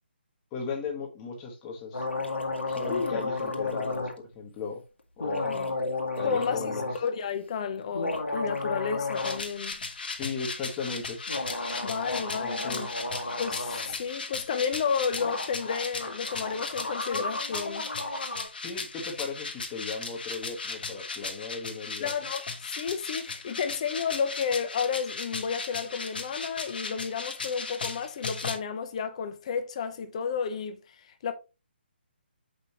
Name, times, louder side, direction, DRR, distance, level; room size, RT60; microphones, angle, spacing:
voice 1, 0.5-2.0 2.7-4.8 5.2-5.6 6.2-6.9 10.2-11.2 12.1-12.9 18.6-22.1, left 4 dB, 20° left, 1.3 m, -37 dB
sound 1, 1.9-4.1 5.2-7.0 7.8-9.5 9.7-9.8 11.3-13.9 14.9-15.0 15.2-18.5, left 2 dB, 80° left, 1.5 m, -33 dB
voice 2, 2.8-3.2 5.2-5.7 6.2-9.8 11.8-12.9 13.4-17.9 22.0-31.3, left 6 dB, 35° left, 0.8 m, -32 dB
sound 2, 9.2-28.6, left 4 dB, 60° left, 1.4 m, -37 dB
6.7 x 5.2 x 2.9 m
figure-of-eight pair, 145°, 6 cm